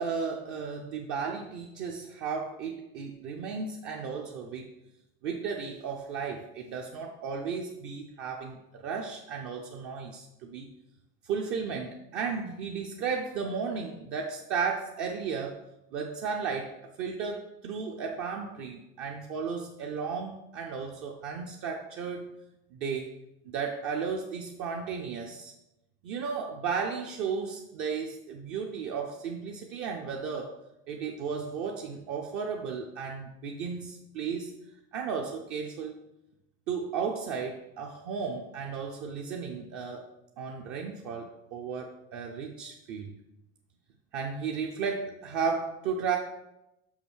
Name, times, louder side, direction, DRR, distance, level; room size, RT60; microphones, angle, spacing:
voice 1, 0.0-4.7 5.2-10.7 11.2-15.6 15.9-22.3 22.7-23.1 23.4-25.5 26.0-30.5 30.9-34.5 34.9-35.9 36.7-40.1 40.4-43.2 44.1-46.2, right 5 dB, 45° right, 1 dB, 0.7 m, -34 dB
6.2 x 5.8 x 6.3 m, 0.91 s
cardioid pair, 180°, 30 cm